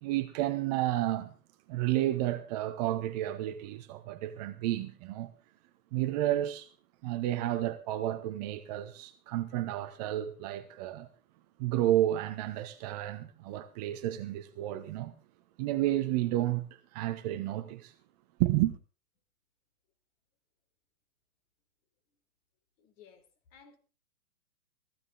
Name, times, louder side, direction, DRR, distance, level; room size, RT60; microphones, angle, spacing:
voice 1, 0.0-1.3 1.7-5.3 5.9-6.7 7.0-11.1 11.6-15.1 15.6-17.9 18.4-18.8, right 14 dB, 30° right, 1.1 m, -31 dB
voice 2, 22.8-23.8, left 7 dB, 40° left, 4.2 m, -57 dB
18.5 x 15.0 x 3.8 m
figure-of-eight pair, 125°, 43 cm